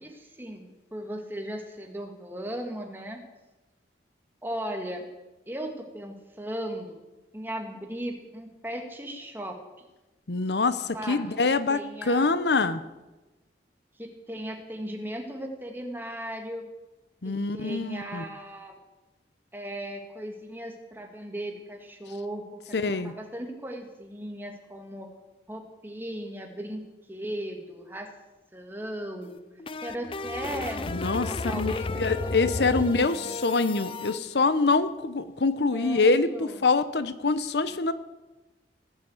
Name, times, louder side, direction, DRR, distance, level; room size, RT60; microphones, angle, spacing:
voice 1, 0.0-3.2 4.4-5.0 5.5-7.0 7.3-9.6 10.9-11.4 11.7-12.3 14.0-16.6 17.2-18.8 19.5-25.1 25.5-26.8 27.1-28.1 28.5-29.4 29.8-30.9 31.2-33.4 35.7-36.7, right 1 dB, 10° right, 3 dB, 1.8 m, -37 dB
voice 2, 10.3-12.8 17.2-18.2 22.7-23.1 30.9-31.3 31.6-37.9, left 3 dB, 75° left, 13 dB, 0.8 m, -25 dB
sound 1, 29.2-34.2, left 3 dB, 30° left, 0.5 m, -33 dB
18.5 x 7.2 x 7.9 m, 1.1 s
head